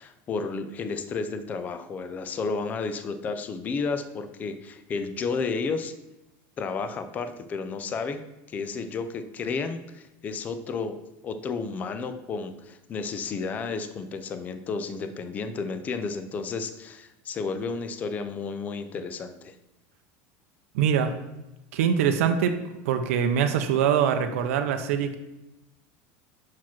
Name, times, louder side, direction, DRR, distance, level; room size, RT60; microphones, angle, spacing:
voice 1, 0.0-5.9 6.6-8.2 8.5-11.0 11.2-19.5, left 4 dB, 20° left, 9 dB, 0.4 m, -32 dB
voice 2, 20.7-21.1 21.7-22.6 22.8-25.2, right 8 dB, 90° right, 7 dB, 0.6 m, -23 dB
6.0 x 4.7 x 5.9 m, 0.97 s
supercardioid pair, 165°, 7 cm